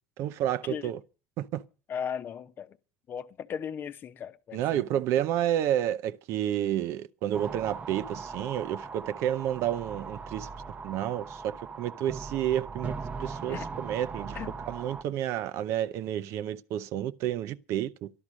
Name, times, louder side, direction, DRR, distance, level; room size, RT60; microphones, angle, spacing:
voice 1, 0.2-1.0 1.4-1.6 4.5-10.5 10.8-12.9 13.2-18.1, right 11 dB, 60° right, 0.7 m, -30 dB
voice 2, 1.9-2.8 3.1-4.8 13.5-13.7 14.3-14.5, left 8 dB, 40° left, 0.9 m, -37 dB
sound 1, 7.3-15.0, right 4 dB, 30° right, 0.8 m, -39 dB
12.0 x 12.0 x 6.2 m
supercardioid pair, 110°, 5 cm